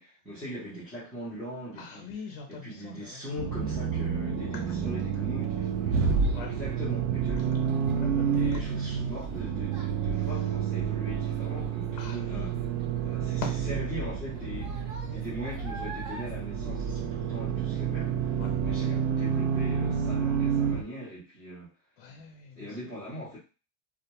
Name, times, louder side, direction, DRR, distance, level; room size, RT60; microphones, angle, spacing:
voice 1, 0.0-2.1 2.5-6.1 6.4-7.9 8.3-12.5 13.0-18.3 18.6-21.7 22.6-23.4, equal, ahead, -13 dB, 0.6 m, -41 dB
voice 2, 1.8-3.2 6.3-6.6 8.0-8.4 10.1-10.4 12.0-12.7 13.0-13.2 18.4-18.5 22.0-22.8, left 6 dB, 50° left, 2 dB, 0.6 m, -44 dB
Accelerating revving vroom, 3.4-20.8, right 7 dB, 65° right, 0.5 m, -29 dB
Child speech kid speaking, 5.0-17.7 18.0-18.4 18.9-19.0, right 3 dB, 35° right, 0.8 m, -48 dB
2.3 x 2.1 x 2.8 m, 0.32 s
cardioid pair, 170°, 48 cm